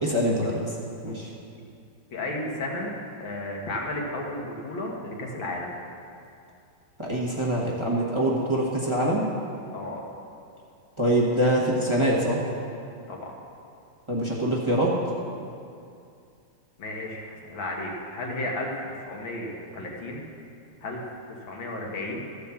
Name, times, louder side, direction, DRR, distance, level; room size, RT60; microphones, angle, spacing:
voice 1, 0.0-0.6 1.0-1.3 7.0-9.2 11.0-12.4 14.1-14.9, right 1 dB, 20° right, -4 dB, 1.1 m, -24 dB
voice 2, 2.1-5.7 9.7-10.0 13.1-13.3 16.8-20.3 20.8-22.3, left 1 dB, 70° left, -1 dB, 2.2 m, -33 dB
14.0 x 5.2 x 7.0 m, 2.5 s
omnidirectional pair, 2.2 m